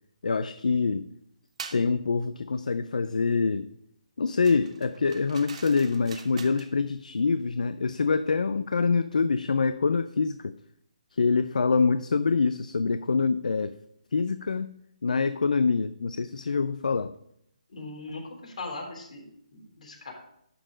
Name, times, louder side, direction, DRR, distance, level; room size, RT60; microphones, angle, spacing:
voice 1, 0.2-1.1 1.7-3.7 4.2-10.6 11.1-13.8 14.1-14.7 15.0-17.1, left 4 dB, 80° left, 12 dB, 0.4 m, -25 dB
sound 1, 1.6-1.9 4.4-6.7, right 6 dB, 60° right, 0.9 m, -44 dB
voice 2, 17.7-19.2 19.5-20.1, left 3 dB, 65° left, -1 dB, 3.2 m, -39 dB
11.5 x 3.8 x 5.1 m, 0.73 s
hypercardioid pair, 155°, 4 cm